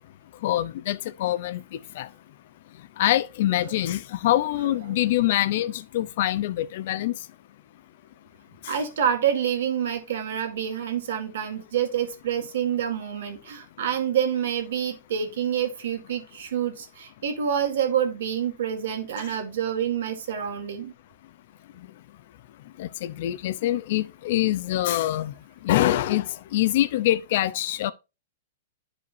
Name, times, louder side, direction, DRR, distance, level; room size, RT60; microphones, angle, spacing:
voice 1, 0.4-1.6 1.9-2.1 3.0-7.1 8.6-8.7 22.8-25.3 25.6-27.9, left 14 dB, 60° left, 0.5 m, -24 dB
voice 2, 8.6-20.9, right 9 dB, 75° right, 1.9 m, -27 dB
11.0 x 4.9 x 2.6 m
hypercardioid pair, 135°, 0 cm